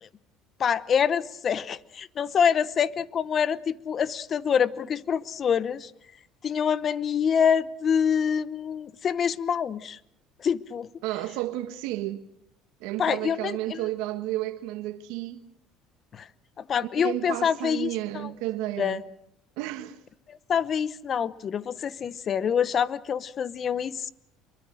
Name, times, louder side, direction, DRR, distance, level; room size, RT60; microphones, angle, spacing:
voice 1, 0.6-5.9 6.4-10.0 10.4-10.9 13.0-13.8 16.1-16.3 16.6-18.3 18.8-19.0 20.3-24.1, left 7 dB, 40° left, 0.9 m, -26 dB
voice 2, 11.0-12.3 12.8-15.4 16.9-19.0 19.6-20.0, right 15 dB, 80° right, 1.7 m, -32 dB
26.5 x 23.0 x 6.4 m
cardioid pair, 115°, 0 cm